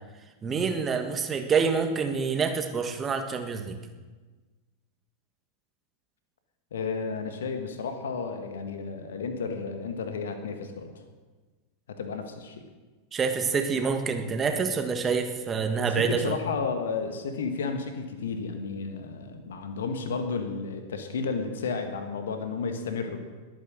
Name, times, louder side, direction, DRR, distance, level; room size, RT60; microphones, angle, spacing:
voice 1, 0.4-3.8 13.1-16.4, right 5 dB, 20° right, 6 dB, 1.8 m, -27 dB
voice 2, 6.7-11.0 11.9-12.6 15.8-23.2, left 5 dB, 65° left, 6 dB, 1.7 m, -32 dB
21.0 x 9.3 x 6.4 m, 1.3 s
figure-of-eight pair, 90°, 0 cm